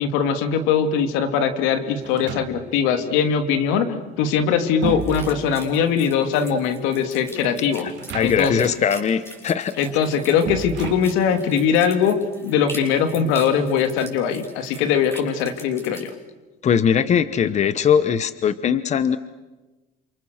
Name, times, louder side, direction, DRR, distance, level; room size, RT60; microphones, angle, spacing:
voice 1, 0.0-7.9 8.2-8.7 9.8-16.1, left 7 dB, 85° left, 8 dB, 2.6 m, -21 dB
sound 1, 2.0-2.9 4.2-6.0 7.8-8.7 8.9-9.0 10.4-11.6, right 9 dB, 65° right, 2.2 m, -33 dB
sound 2, 5.0-16.1, equal, 15° left, 5.9 m, -42 dB
voice 2, 8.1-9.7 16.6-19.2, left 7 dB, 35° left, 14 dB, 1.0 m, -20 dB
28.5 x 27.5 x 6.6 m, 1.2 s
cardioid pair, 125°, 20 cm